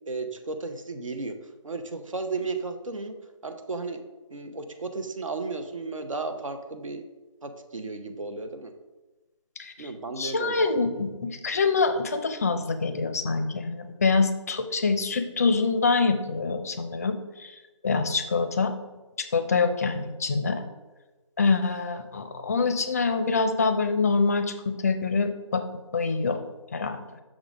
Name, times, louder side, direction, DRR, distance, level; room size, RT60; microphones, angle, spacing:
voice 1, 0.1-1.3 1.6-3.1 3.4-4.0 4.3-7.0 7.4-8.7 9.8-10.5, right 3 dB, 80° right, 6 dB, 0.8 m, -34 dB
voice 2, 9.6-9.9 10.2-17.5 17.8-18.7 19.2-20.6 21.4-25.6 25.9-26.4 26.7-27.0, left 4 dB, 30° left, 9 dB, 0.4 m, -25 dB
6.2 x 3.8 x 4.9 m, 1.2 s
figure-of-eight pair, 160°, 17 cm